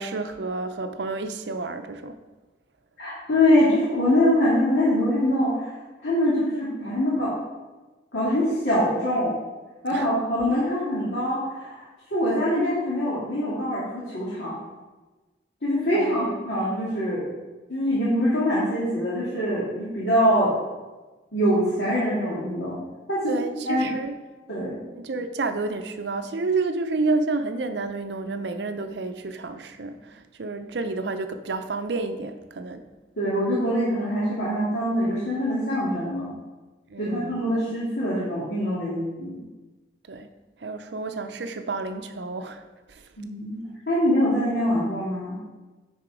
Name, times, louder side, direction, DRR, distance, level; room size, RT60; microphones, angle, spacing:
voice 1, 0.0-2.2 9.9-10.1 15.9-16.4 23.3-24.1 24.9-32.8 36.9-37.4 40.1-40.3 40.6-42.6 42.9-43.0, right 3 dB, 70° right, 8 dB, 0.6 m, -30 dB
voice 2, 3.0-5.7 6.0-7.3 8.1-9.4 9.8-11.8 12.1-14.5 15.6-17.2 17.7-20.6 21.3-22.8 23.1-23.4 23.7-23.9 24.5-24.8 33.2-36.3 37.0-39.4 43.2-43.6 43.9-45.4, equal, 70° left, -9 dB, 2.2 m, -24 dB
9.8 x 4.2 x 4.8 m, 1.2 s
head